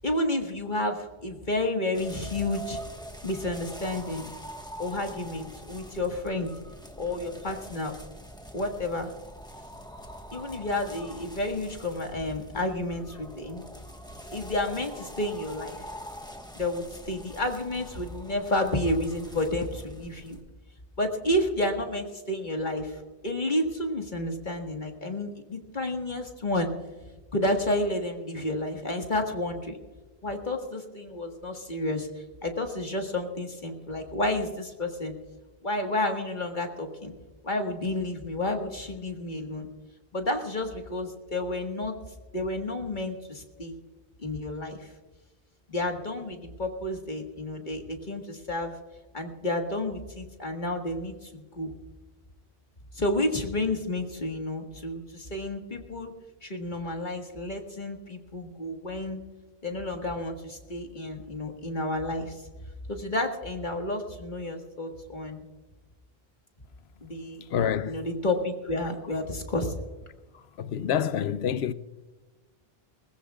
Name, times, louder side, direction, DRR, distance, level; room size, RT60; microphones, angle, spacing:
voice 1, 0.0-2.8 3.2-4.3 4.8-6.5 7.0-8.0 8.5-9.1 10.3-13.6 14.3-15.8 16.6-20.4 21.0-26.7 27.3-29.8 30.2-32.1 32.4-35.1 35.6-37.1 37.4-39.7 40.1-41.9 42.3-43.8 44.2-44.9 45.7-48.8 49.1-51.7 52.9-56.1 56.4-59.2 59.6-62.4 62.9-65.4 67.0-67.4 67.8-69.7, left 1 dB, 50° left, 1.8 m, -30 dB
sound 1, 1.9-20.4, equal, 5° left, 1.3 m, -44 dB
voice 2, 67.5-68.0 70.6-71.7, left 8 dB, 85° left, 0.9 m, -27 dB
21.0 x 20.0 x 2.4 m
omnidirectional pair, 1.0 m